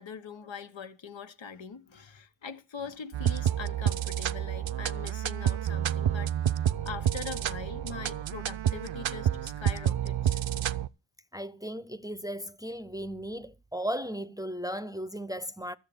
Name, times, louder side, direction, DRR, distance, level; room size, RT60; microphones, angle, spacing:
voice 1, 0.0-6.3 6.6-10.4, left 6 dB, 75° left, 1.5 m, -42 dB
sound 1, 3.1-10.9, right 10 dB, 80° right, 0.7 m, -29 dB
voice 2, 11.3-15.8, equal, 10° right, 0.7 m, -36 dB
13.5 x 7.4 x 7.1 m
cardioid pair, 60°, 46 cm